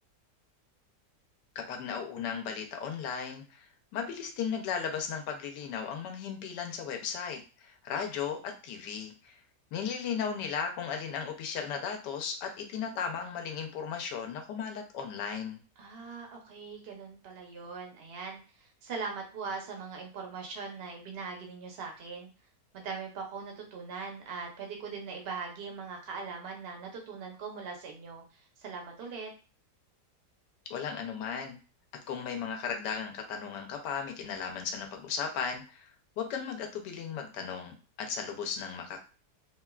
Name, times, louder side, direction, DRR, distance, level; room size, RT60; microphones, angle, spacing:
voice 1, 1.7-9.4 9.7-15.6 30.7-31.6 32.1-35.9 36.2-39.0, left 7 dB, 85° left, 4 dB, 1.2 m, -36 dB
voice 2, 15.8-22.3 22.7-28.2 28.6-29.3, right 5 dB, 55° right, 1 dB, 0.7 m, -40 dB
3.3 x 2.2 x 2.3 m, 0.35 s
omnidirectional pair, 1.8 m